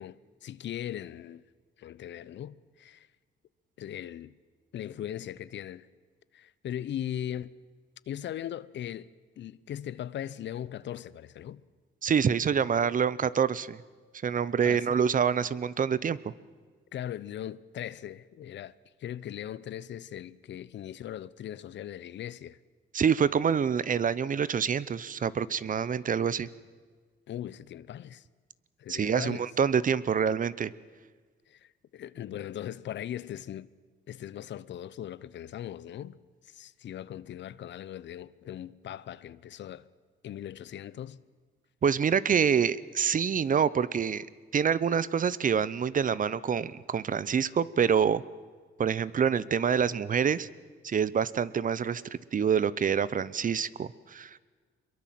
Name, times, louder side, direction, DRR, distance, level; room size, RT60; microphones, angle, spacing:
voice 1, 0.0-1.4 1.8-3.1 3.8-4.3 4.7-5.9 6.3-7.6 8.1-9.1 9.4-11.6 14.6-14.9 16.9-18.7 19.0-22.6 27.3-28.3 28.8-29.5 31.5-33.7 34.1-36.2 36.4-39.9 40.2-41.2, left 11 dB, 65° left, 0.8 m, -39 dB
voice 2, 12.0-13.8 14.2-16.2 22.9-26.5 28.9-30.7 41.8-44.3 44.5-48.2 48.8-50.5 50.8-52.0 52.3-54.4, right 7 dB, 40° right, 0.9 m, -26 dB
24.5 x 22.5 x 7.7 m
cardioid pair, 90°, 20 cm